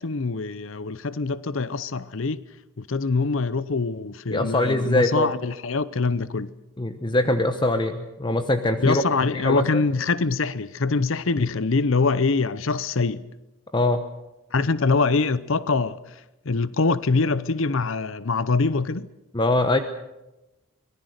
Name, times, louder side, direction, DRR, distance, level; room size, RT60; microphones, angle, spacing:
voice 1, 0.0-2.4 2.8-6.5 8.8-13.2 14.5-16.0 16.5-19.1, left 4 dB, 65° left, 0.8 m, -24 dB
voice 2, 4.3-5.3 6.8-9.0 9.3-9.8 13.7-14.0 19.3-19.8, left 1 dB, 20° left, 1.0 m, -22 dB
25.0 x 19.0 x 6.6 m
head